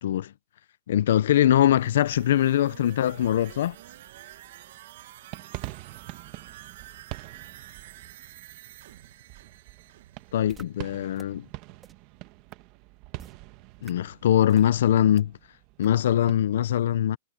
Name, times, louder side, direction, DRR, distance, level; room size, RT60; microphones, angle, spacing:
voice 1, 0.0-0.3 0.9-3.8 10.3-11.5 13.8-15.3 15.8-17.2, left 11 dB, 65° left, 0.6 m, -22 dB
sound 1, 1.7-11.4 11.7-11.8, right 14 dB, 55° right, 1.7 m, -48 dB
sound 2, 3.0-16.3, right 19 dB, 30° right, 1.3 m, -45 dB
sound 3, 10.5-10.6 11.2-11.3 11.8-11.9 12.5-12.6 13.2-13.3 13.8-13.9 14.5-14.7 15.2-15.3 15.8-15.9, right 7 dB, 15° right, 2.2 m, -48 dB
supercardioid pair, 170°, 0 cm